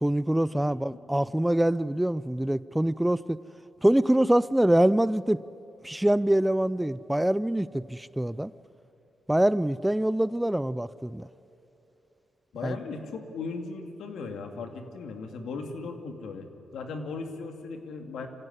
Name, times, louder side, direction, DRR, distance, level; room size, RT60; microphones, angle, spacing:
voice 1, 0.0-3.4 3.8-5.4 5.8-8.5 9.3-11.3 12.6-12.8, right 1 dB, 5° right, 17 dB, 0.5 m, -24 dB
voice 2, 12.5-16.5 16.7-18.3, left 4 dB, 85° left, 5 dB, 2.5 m, -37 dB
25.0 x 16.5 x 9.8 m, 2.9 s
cardioid pair, 85°, 0 cm